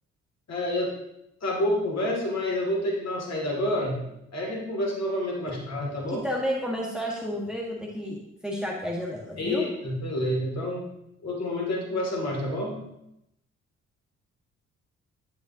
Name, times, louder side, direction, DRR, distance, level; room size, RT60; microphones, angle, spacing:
voice 1, 0.5-0.9 1.4-4.0 4.3-6.2 9.4-10.8 11.2-12.8, left 1 dB, 45° left, -1 dB, 2.6 m, -28 dB
voice 2, 6.1-9.7, equal, ahead, -2 dB, 1.7 m, -31 dB
9.9 x 5.3 x 2.9 m, 0.84 s
figure-of-eight pair, 40°, 37 cm